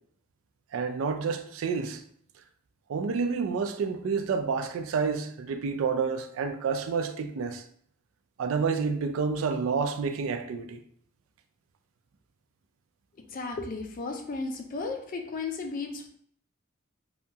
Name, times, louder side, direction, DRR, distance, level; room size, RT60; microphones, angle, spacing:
voice 1, 0.7-2.0 2.9-7.6 8.4-10.8, right 5 dB, 75° right, 0.3 m, -29 dB
voice 2, 13.3-16.1, left 3 dB, 40° left, 0.4 m, -34 dB
2.8 x 2.3 x 2.7 m
head